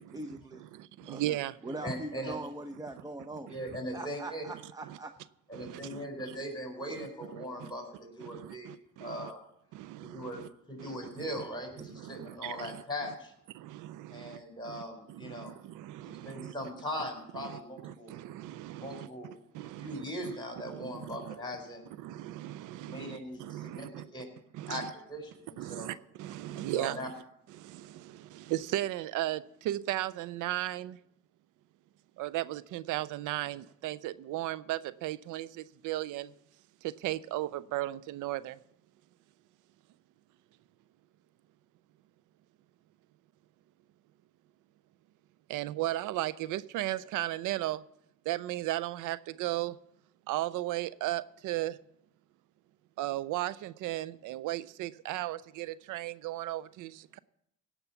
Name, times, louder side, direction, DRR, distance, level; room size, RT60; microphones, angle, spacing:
voice 1, 0.0-0.6 1.1-1.4 1.6-3.5 3.9-5.1, right 2 dB, 10° right, 0.8 m, -41 dB
voice 2, 0.7-1.6 4.9-5.0 5.6-6.0 7.0-7.1 7.3-7.7 8.2-9.3 9.7-10.5 10.8-11.2 11.8-12.8 13.5-14.4 14.6-14.8 15.1-16.5 17.4-19.1 19.5-20.3 20.7-21.3 22.0-24.0 24.5-24.9 25.6-27.1 27.6-31.0 32.2-36.3 36.8-38.6 45.5-47.8 48.3-49.8 50.3-51.8 53.0-57.2, right 15 dB, 85° right, 0.5 m, -36 dB
voice 3, 1.8-2.4 3.5-4.4 5.5-8.7 9.0-9.4 10.0-13.3 14.1-15.6 16.0-18.2 18.8-19.3 19.8-21.8 22.8-23.9 24.1-24.3 24.7-25.9 26.5-27.1, equal, 15° left, 4.1 m, -40 dB
17.0 x 5.8 x 7.0 m
cardioid pair, 90°, 30 cm